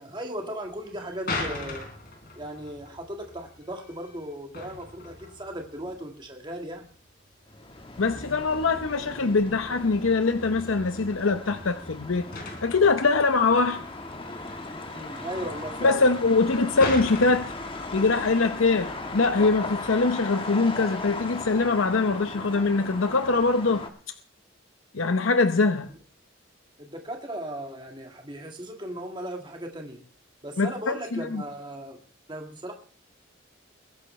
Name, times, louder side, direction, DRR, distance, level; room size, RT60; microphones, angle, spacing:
voice 1, 0.0-1.8 2.4-6.9 14.9-16.0 26.8-30.0 30.4-32.0 32.3-32.7, right 1 dB, 20° right, 1.7 m, -37 dB
sound 1, 0.6-20.4, left 3 dB, 45° left, 3.9 m, -41 dB
sound 2, 7.5-23.9, left 2 dB, 25° left, 1.5 m, -37 dB
voice 2, 8.0-12.2 12.6-13.8 15.8-17.5 17.9-23.8 24.9-25.9 30.6-31.4, left 3 dB, 80° left, 0.8 m, -23 dB
22.0 x 11.0 x 3.2 m
head